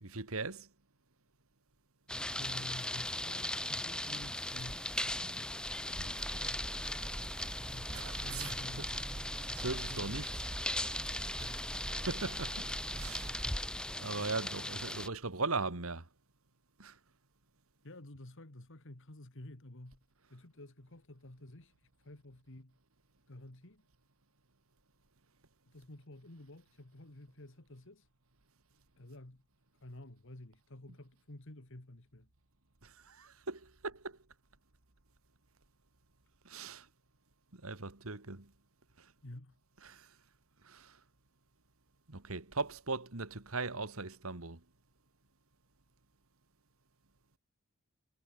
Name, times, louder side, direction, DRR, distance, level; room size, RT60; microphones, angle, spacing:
voice 1, 0.0-0.7 5.2-5.5 5.9-6.4 7.9-8.9 9.5-10.4 11.4-11.6 12.1-13.4 14.0-16.1 16.8-17.0 32.8-34.2 36.4-36.9 37.5-38.5 39.0-39.1 39.8-40.1 40.6-41.0 42.1-44.6, right 3 dB, 75° right, 2.2 m, -40 dB
sound 1, 2.1-15.1, left 1 dB, 5° left, 1.0 m, -38 dB
voice 2, 2.3-4.9 7.7-9.1 9.9-10.1 11.4-11.7 17.8-20.0 20.3-21.7 22.0-22.8 23.3-23.8 25.7-28.1 29.0-29.4 29.8-32.3 39.2-39.6, left 1 dB, 60° left, 2.1 m, -51 dB
sound 2, 6.2-13.4, right 2 dB, 25° right, 0.5 m, -45 dB
head